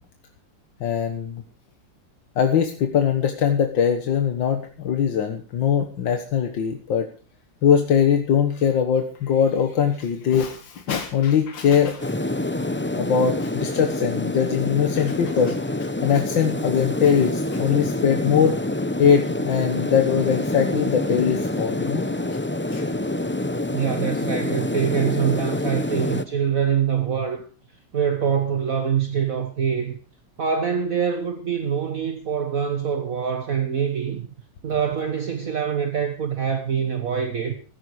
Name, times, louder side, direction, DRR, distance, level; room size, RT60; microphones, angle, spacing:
voice 1, 0.8-1.4 2.4-7.1 7.6-12.1 12.9-18.6 19.0-22.0 22.7-22.8, left 7 dB, 85° left, 2.1 m, -21 dB
sound 1, 12.0-26.2, left 1 dB, 20° left, 0.3 m, -26 dB
voice 2, 23.7-27.4 27.9-30.0 30.4-34.3 34.6-37.5, right 7 dB, 50° right, 1.7 m, -24 dB
15.5 x 14.5 x 4.8 m
omnidirectional pair, 2.0 m